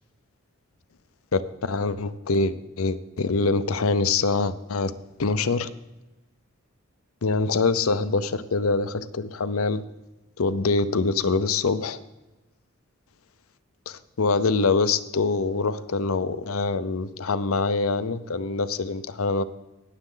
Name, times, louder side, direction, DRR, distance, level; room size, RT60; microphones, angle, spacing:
voice 1, 1.3-4.9 5.2-5.7 7.2-9.8 10.4-12.0 13.9-19.4, left 3 dB, 85° left, 13 dB, 0.7 m, -24 dB
19.0 x 7.5 x 3.9 m, 1.0 s
head